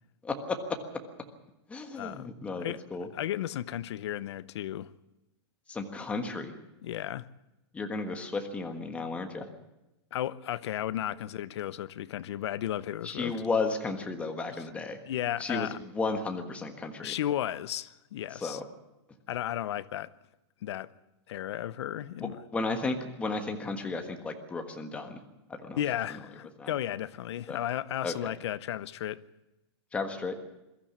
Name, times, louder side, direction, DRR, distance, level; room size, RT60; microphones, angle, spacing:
voice 1, 0.2-0.8 1.7-3.1 5.7-6.5 7.7-9.5 13.0-15.0 15.4-17.1 18.4-18.6 22.2-25.2 25.5-25.8 26.6-26.7 27.5-27.6 28.0-28.3 29.9-30.3, left 3 dB, 10° left, 1.5 m, -33 dB
voice 2, 1.9-2.3 2.6-2.8 3.1-4.9 6.8-7.3 10.1-13.4 15.0-15.8 17.0-18.6 19.3-20.1 20.6-20.9 21.3-22.4 25.8-29.2, left 12 dB, 70° left, 0.8 m, -34 dB
22.0 x 14.0 x 8.5 m
supercardioid pair, 165°, 15 cm